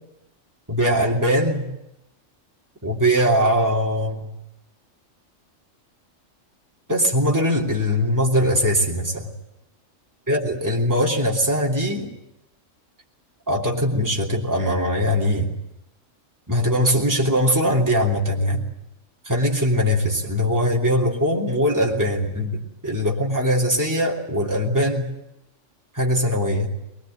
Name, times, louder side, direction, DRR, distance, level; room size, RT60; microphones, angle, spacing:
voice 1, 0.7-1.7 2.8-4.3 6.9-9.3 10.3-12.1 13.5-15.5 16.5-18.7 19.2-25.1 25.9-26.7, equal, 15° right, -2 dB, 3.2 m, -21 dB
22.0 x 21.5 x 9.3 m, 0.88 s
omnidirectional pair, 1.3 m